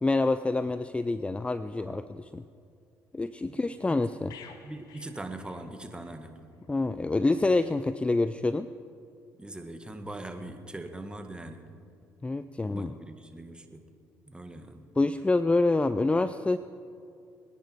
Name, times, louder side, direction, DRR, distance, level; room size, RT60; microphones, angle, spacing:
voice 1, 0.0-2.4 3.1-4.3 6.7-8.7 12.2-12.9 15.0-16.6, left 2 dB, 15° left, 13 dB, 0.5 m, -27 dB
sound 1, 4.3-6.2 6.5-6.7, left 7 dB, 65° left, 1.4 m, -52 dB
voice 2, 4.6-6.3 9.4-11.6 12.7-13.8 14.3-14.8, right 1 dB, 15° right, 6 dB, 1.7 m, -41 dB
24.0 x 10.0 x 4.7 m, 2.5 s
hypercardioid pair, 60°, 7 cm